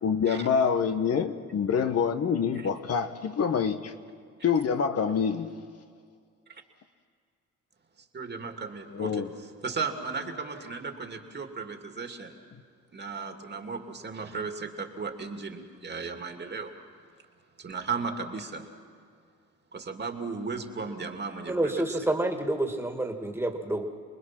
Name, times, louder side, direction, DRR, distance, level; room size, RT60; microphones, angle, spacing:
voice 1, 0.0-3.9 4.4-5.5 8.9-9.3, left 6 dB, 55° left, 8 dB, 1.2 m, -26 dB
voice 2, 8.1-12.4 12.9-16.7 17.6-18.7 19.7-21.8, right 4 dB, 35° right, 4 dB, 2.3 m, -35 dB
voice 3, 21.5-23.9, right 1 dB, 10° right, 4 dB, 2.2 m, -28 dB
29.0 x 20.5 x 6.0 m, 2.2 s
cardioid pair, 90°, 30 cm